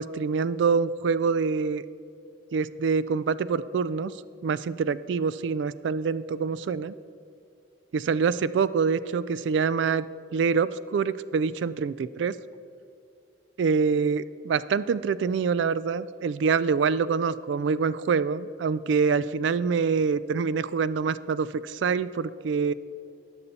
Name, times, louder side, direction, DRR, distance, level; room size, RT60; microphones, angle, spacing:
voice 1, 0.0-1.8 2.5-4.1 4.4-6.9 7.9-10.0 10.3-12.4 13.6-22.7, right 5 dB, 75° right, 16 dB, 0.3 m, -25 dB
18.5 x 7.1 x 4.1 m, 2.5 s
head